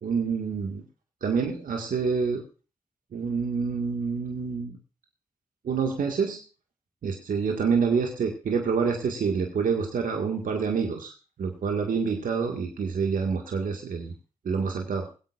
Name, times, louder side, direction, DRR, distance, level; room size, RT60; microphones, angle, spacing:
voice 1, 0.0-0.8 1.2-2.4 3.1-4.8 5.6-6.4 7.0-11.1 11.4-14.1 14.4-15.1, right 5 dB, 80° right, 2 dB, 2.0 m, -27 dB
21.5 x 8.4 x 2.5 m, 0.34 s
supercardioid pair, 40°, 14 cm